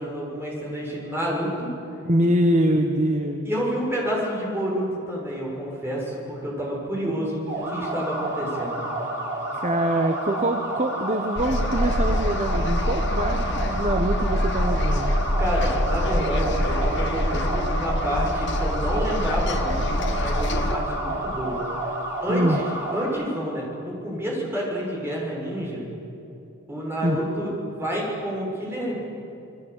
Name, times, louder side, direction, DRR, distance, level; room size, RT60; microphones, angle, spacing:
voice 1, 0.0-1.7 3.4-8.9 15.4-21.6 22.2-22.7 22.9-25.8 26.7-29.0, equal, 10° right, -3 dB, 7.0 m, -29 dB
voice 2, 2.0-3.5 9.5-15.2 22.3-22.6 27.0-27.2, right 1 dB, 30° right, 5 dB, 1.2 m, -24 dB
sound 1, 7.4-23.0, right 1 dB, 50° right, 8.0 m, -30 dB
sound 2, 11.4-20.8, left 1 dB, 55° left, 1.7 m, -25 dB
27.5 x 22.0 x 8.5 m, 2.8 s
head